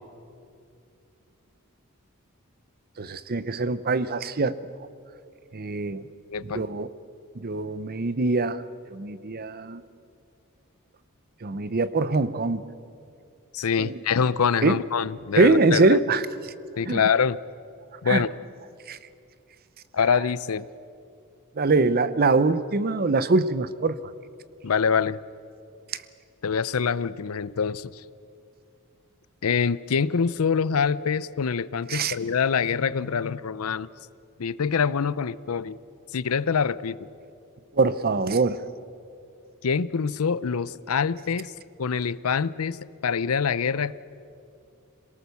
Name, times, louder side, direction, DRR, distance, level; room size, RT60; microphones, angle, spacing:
voice 1, 3.0-4.6 5.5-6.0 6.5-6.9 7.4-8.6 8.9-9.8 11.4-12.6 13.8-13.9 14.6-14.8 15.3-16.3 16.9-17.0 18.1-18.2 18.9-19.0 21.6-24.0 31.9-32.2 37.7-38.6, right 3 dB, 45° right, 14 dB, 0.7 m, -23 dB
voice 2, 6.3-6.6 13.5-16.0 16.8-17.4 18.0-18.3 19.9-20.7 24.6-25.2 26.4-27.9 29.4-33.9 34.4-35.8 36.1-37.0 39.6-41.5 41.8-42.8 43.0-43.9, left 6 dB, 75° left, 18 dB, 0.6 m, -25 dB
26.5 x 18.0 x 7.0 m, 2.5 s
head